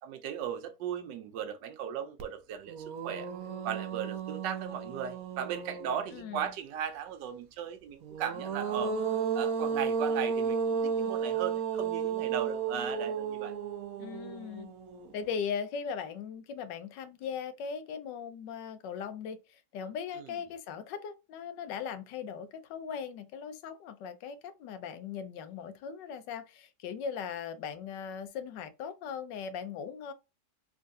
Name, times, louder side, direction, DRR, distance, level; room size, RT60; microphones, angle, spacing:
voice 1, 0.0-3.3 3.6-9.0 9.3-13.6 20.1-20.4, right 9 dB, 85° right, 1.3 m, -37 dB
sound 1, 2.2-2.3 2.7-6.3 8.0-15.3, right 6 dB, 65° right, 0.9 m, -33 dB
voice 2, 6.1-6.5 14.0-14.7 15.1-30.1, left 7 dB, 80° left, 1.3 m, -39 dB
3.5 x 3.1 x 2.6 m
omnidirectional pair, 1.9 m